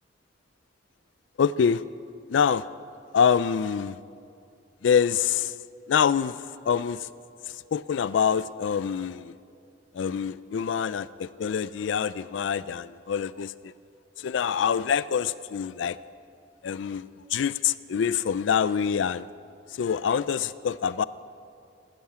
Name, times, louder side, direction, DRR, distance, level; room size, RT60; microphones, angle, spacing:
voice 1, 1.4-1.8 2.3-2.6 3.1-4.0 4.8-5.5 5.9-6.3 6.7-7.1 7.7-9.3 9.9-13.5 14.2-16.0 16.6-19.2 19.8-21.0, left 7 dB, 80° left, 17 dB, 0.4 m, -25 dB
13.0 x 10.5 x 8.5 m, 2.4 s
head